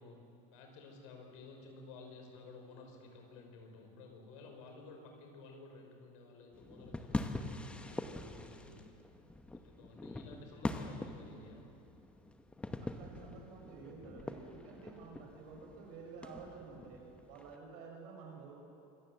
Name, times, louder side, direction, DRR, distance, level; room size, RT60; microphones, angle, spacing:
voice 1, 0.0-8.9 9.6-11.6, left 3 dB, 80° left, 3 dB, 5.1 m, -54 dB
sound 1, 6.5-17.6, left 2 dB, 5° left, 1.0 m, -44 dB
voice 2, 12.8-18.5, right 4 dB, 65° right, 0 dB, 6.1 m, -51 dB
25.5 x 14.5 x 7.8 m, 2.8 s
cardioid pair, 160°, 17 cm